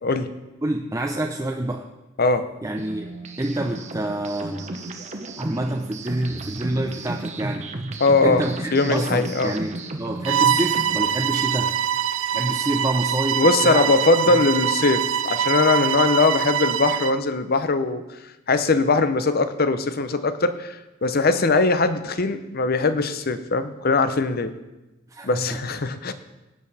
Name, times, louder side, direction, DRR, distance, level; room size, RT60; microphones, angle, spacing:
voice 1, 0.0-0.3 2.2-2.5 8.0-8.5 8.7-9.5 13.4-18.0 18.5-24.5 25.2-26.1, left 3 dB, 50° left, 11 dB, 0.8 m, -21 dB
voice 2, 0.6-1.9 2.6-3.1 3.4-4.7 5.4-7.7 8.2-8.5 8.8-11.8 12.3-13.9 14.2-14.7 25.1-25.6, right 1 dB, 15° right, 2 dB, 0.6 m, -27 dB
sound 1, 2.8-11.1, right 2 dB, 35° right, 0.9 m, -34 dB
Bowed string instrument, 10.2-17.2, right 9 dB, 75° right, 0.5 m, -24 dB
17.5 x 8.7 x 4.2 m, 1.0 s
head